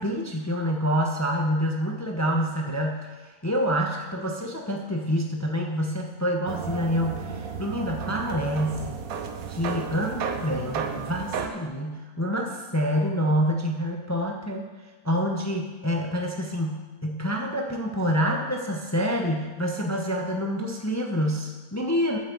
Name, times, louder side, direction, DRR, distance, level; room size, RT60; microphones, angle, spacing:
voice 1, 0.0-9.0 9.5-14.7 15.0-22.2, equal, 15° left, 1 dB, 0.8 m, -27 dB
sound 1, 6.5-11.5, right 6 dB, 70° right, 1.2 m, -33 dB
8.1 x 7.8 x 7.0 m, 1.2 s
omnidirectional pair, 1.6 m